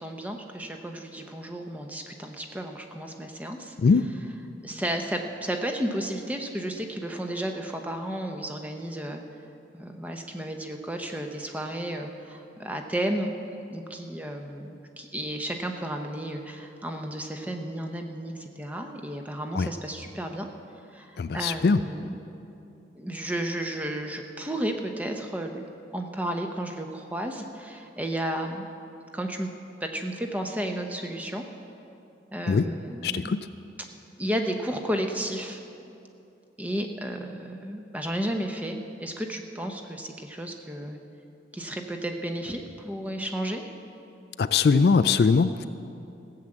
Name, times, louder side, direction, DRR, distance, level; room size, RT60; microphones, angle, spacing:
voice 1, 0.0-3.7 4.6-9.2 9.7-13.3 13.7-20.5 20.9-22.1 23.0-25.7 25.9-28.7 29.1-29.5 29.8-31.4 32.3-33.3 34.2-35.6 36.6-41.0 41.5-43.7, right 1 dB, 10° right, 4 dB, 0.8 m, -33 dB
voice 2, 3.8-4.1 19.5-19.7 21.2-21.8 32.5-32.7 33.0-33.5 44.4-45.7, left 5 dB, 55° left, 12 dB, 0.3 m, -21 dB
15.5 x 7.4 x 7.7 m, 2.7 s
head